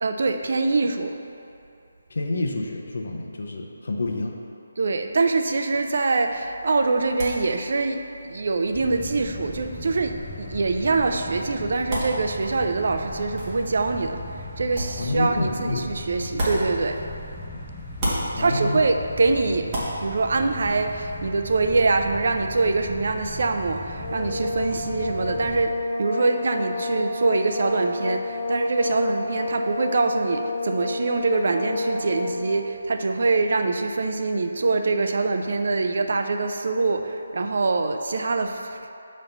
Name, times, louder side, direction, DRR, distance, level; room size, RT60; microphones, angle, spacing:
voice 1, 0.0-1.1 4.8-17.0 18.4-19.7 20.0-25.7 26.0-38.8, right 3 dB, 55° right, 6 dB, 0.4 m, -24 dB
voice 2, 2.1-4.3 15.0-15.8 17.5-17.6 18.3-18.9, left 2 dB, 65° left, 0 dB, 0.7 m, -28 dB
sound 1, 6.3-17.5 17.8-21.2, right 1 dB, 20° right, 1.2 m, -36 dB
sound 2, 8.7-25.7, left 1 dB, 5° left, 0.6 m, -38 dB
sound 3, 23.9-32.7, left 2 dB, 30° left, 0.9 m, -29 dB
7.0 x 3.1 x 5.3 m, 2.7 s
hypercardioid pair, 170°, 0 cm